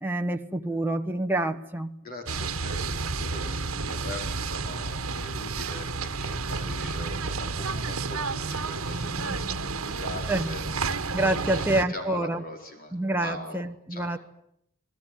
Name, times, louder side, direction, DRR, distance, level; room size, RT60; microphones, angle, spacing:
voice 1, 0.0-2.0 9.2-9.3 10.3-10.5 11.1-12.4 12.9-14.2, right 1 dB, 10° right, 4 dB, 1.1 m, -27 dB
voice 2, 2.0-12.9 13.2-13.6 13.9-14.2, left 1 dB, 40° left, 3 dB, 4.8 m, -41 dB
sound 1, 2.3-11.8, right 4 dB, 75° right, 1.5 m, -31 dB
28.5 x 20.0 x 9.5 m, 0.75 s
head